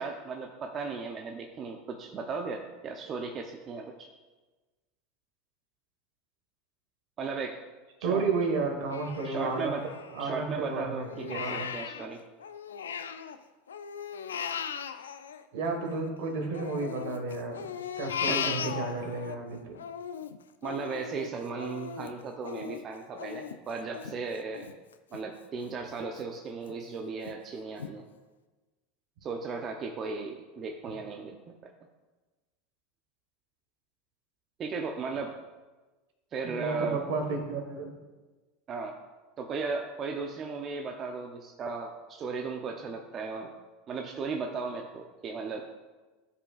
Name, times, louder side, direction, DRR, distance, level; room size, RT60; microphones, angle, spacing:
voice 1, 0.0-4.1 7.2-7.6 8.0-8.3 9.2-9.9 10.2-12.2 18.3-18.5 20.6-24.7 25.1-28.0 29.2-31.7 34.6-35.4 36.3-37.0 38.7-38.9 39.4-43.5 43.9-45.7, right 4 dB, 40° right, 3 dB, 0.7 m, -36 dB
voice 2, 8.0-9.7 10.1-11.7 15.5-19.8 36.4-37.9, right 3 dB, 70° right, 3 dB, 1.6 m, -32 dB
Crying sobbing, 8.9-10.6 11.0-13.4 13.7-16.1 16.5-19.4 19.7-25.2 25.6-25.8 26.2-26.7 27.2-27.3 27.8-27.9, left 7 dB, 90° left, 0.4 m, -37 dB
12.5 x 5.3 x 2.5 m, 1.2 s
hypercardioid pair, 95°, 0 cm